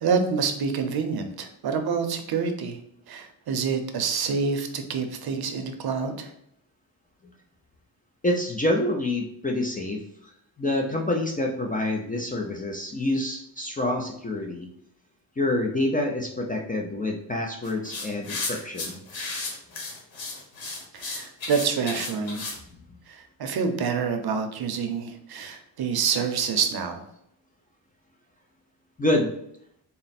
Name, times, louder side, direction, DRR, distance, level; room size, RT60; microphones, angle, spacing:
voice 1, 0.0-2.8 3.1-6.3 20.9-22.5 23.1-27.0, right 5 dB, 55° right, 6 dB, 0.6 m, -27 dB
voice 2, 8.2-10.3 10.6-14.7 15.4-19.0 22.9-23.0 29.0-29.3, left 1 dB, 20° left, 1 dB, 0.4 m, -27 dB
sound 1, 17.6-22.6, left 3 dB, 75° left, 1.2 m, -34 dB
4.1 x 2.0 x 4.0 m, 0.73 s
cardioid pair, 120°, 45 cm